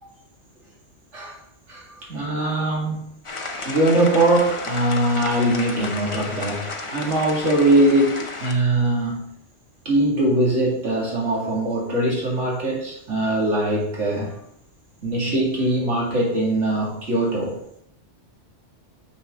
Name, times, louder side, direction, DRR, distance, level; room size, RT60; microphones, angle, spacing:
voice 1, 1.7-3.1 3.6-9.3 9.8-14.3 15.0-17.6, right 1 dB, 80° right, -3 dB, 2.7 m, -21 dB
sound 1, 3.2-8.5, left 3 dB, 30° left, 0.8 m, -33 dB
9.4 x 6.4 x 3.8 m, 0.73 s
omnidirectional pair, 1.2 m